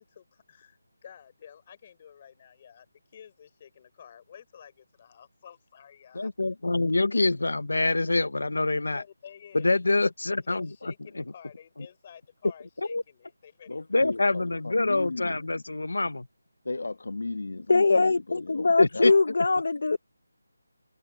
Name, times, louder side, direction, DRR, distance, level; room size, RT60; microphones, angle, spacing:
voice 1, 0.0-6.3 8.9-9.8 10.5-13.8 14.2-14.6, left 8 dB, 15° left, 4.2 m, -51 dB
voice 2, 6.1-9.0 9.5-10.7 12.9-13.0 13.9-16.3 18.8-19.1, left 2 dB, 80° left, 0.7 m, -25 dB
voice 3, 13.7-15.4 16.6-19.2, left 3 dB, 60° left, 1.2 m, -36 dB
voice 4, 17.7-20.0, left 3 dB, 45° left, 0.7 m, -22 dB
figure-of-eight pair, 180°, 0 cm